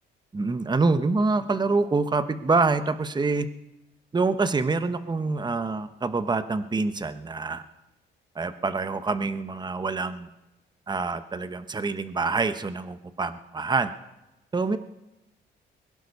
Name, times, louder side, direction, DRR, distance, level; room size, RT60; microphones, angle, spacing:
voice 1, 0.3-3.5 4.1-7.6 8.3-10.3 10.9-13.9 14.5-14.8, right 3 dB, 20° right, 11 dB, 1.0 m, -26 dB
21.5 x 11.0 x 5.5 m, 0.96 s
cardioid pair, 90°, 20 cm